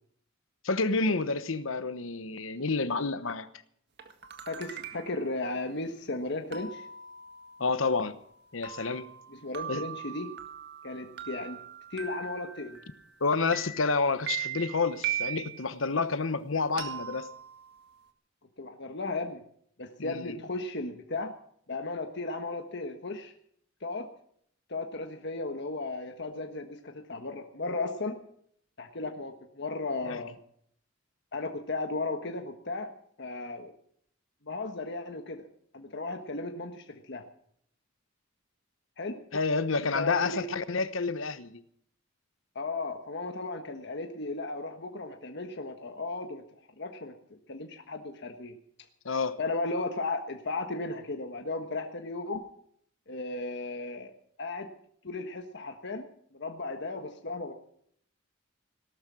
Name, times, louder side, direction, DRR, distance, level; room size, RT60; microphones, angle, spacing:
voice 1, 0.6-3.5 7.6-8.1 8.5-9.1 9.7-9.8 13.2-17.3 20.0-20.4 30.0-30.2 39.3-41.6 49.0-49.4, left 4 dB, 75° left, 1.1 m, -29 dB
sound 1, 4.0-5.3 6.5-13.2 13.5-15.7 16.8-18.1, right 9 dB, 55° right, 1.8 m, -40 dB
voice 2, 4.5-6.9 9.3-10.3 10.8-11.6 11.9-12.8 18.6-19.4 19.8-21.3 21.7-23.3 23.8-24.1 24.7-28.1 28.8-30.4 31.3-32.9 33.2-33.7 34.4-35.5 35.7-37.2 39.0-39.2 39.9-40.5 42.5-46.4 46.8-48.5 49.4-52.4 53.1-54.1 54.4-54.7 55.0-57.5, left 3 dB, 60° left, 1.4 m, -35 dB
18.0 x 12.5 x 6.2 m
head